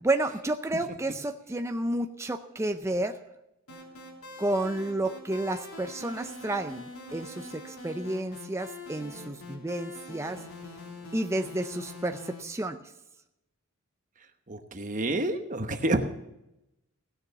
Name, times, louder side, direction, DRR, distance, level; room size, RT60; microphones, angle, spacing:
voice 1, 0.0-3.2 4.4-6.9 7.1-10.4 11.1-12.8, right 1 dB, 10° right, 7 dB, 0.5 m, -31 dB
sound 1, 3.7-12.4, left 2 dB, 75° left, 3.3 m, -44 dB
voice 2, 14.5-16.0, right 1 dB, 35° right, 7 dB, 1.0 m, -28 dB
16.5 x 6.9 x 8.0 m, 0.90 s
head